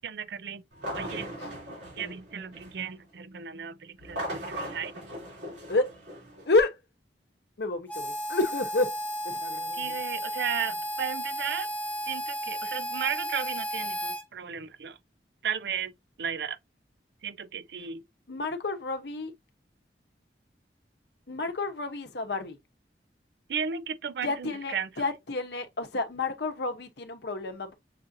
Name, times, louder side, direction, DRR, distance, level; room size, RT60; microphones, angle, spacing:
voice 1, 0.0-0.6 0.9-1.3 2.0-4.9 9.8-11.7 12.1-15.0 15.4-15.9 16.2-16.6 17.2-18.0 23.5-24.9, right 7 dB, 70° right, 0.4 m, -34 dB
sound 1, 0.7-2.9 4.0-6.5, equal, 85° right, 2.8 m, -38 dB
voice 2, 6.5-6.8 7.6-9.0 9.2-10.0 18.3-19.3 21.3-22.6 24.2-27.7, left 2 dB, 70° left, 0.8 m, -30 dB
Harmonica, 7.9-14.2, equal, 10° left, 0.7 m, -33 dB
6.6 x 2.6 x 2.6 m
head